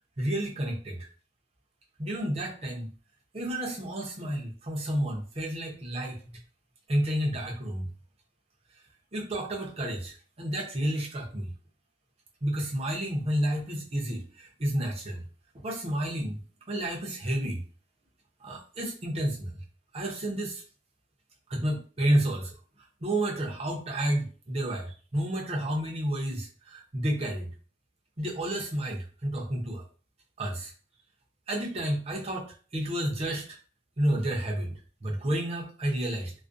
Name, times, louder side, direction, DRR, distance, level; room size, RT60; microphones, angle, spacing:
voice 1, 0.2-1.1 2.0-2.9 3.3-6.4 6.9-7.9 9.1-11.5 12.4-15.2 15.6-16.4 16.7-17.6 18.4-19.6 19.9-20.6 21.5-22.6 23.0-27.5 28.2-29.8 30.4-30.7 31.5-33.6 34.0-36.3, right 1 dB, 30° right, -1 dB, 0.6 m, -30 dB
2.4 x 2.1 x 2.4 m, 0.38 s
head